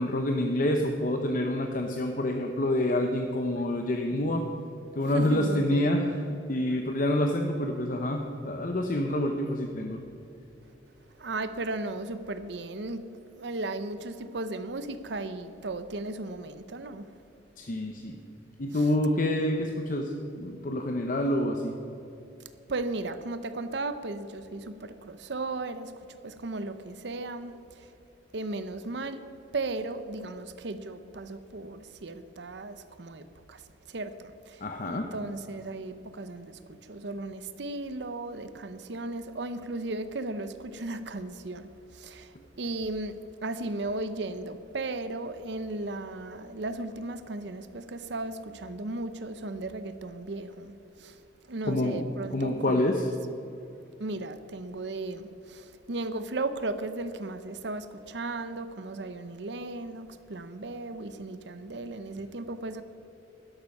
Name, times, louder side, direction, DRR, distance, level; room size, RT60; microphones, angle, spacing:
voice 1, 0.0-4.4 5.0-6.1 6.5-10.0 17.6-18.2 18.6-20.1 20.4-21.7 34.6-35.0 51.7-53.0, left 1 dB, 45° left, 4 dB, 0.8 m, -27 dB
voice 2, 5.0-5.9 11.2-13.0 13.3-17.1 18.7-18.9 22.7-27.9 28.3-29.2 29.5-33.6 33.9-43.1 43.4-50.7 51.0-51.2 51.5-52.9 54.0-62.8, right 2 dB, 65° right, 11 dB, 0.7 m, -36 dB
12.0 x 11.5 x 5.4 m, 2.9 s
head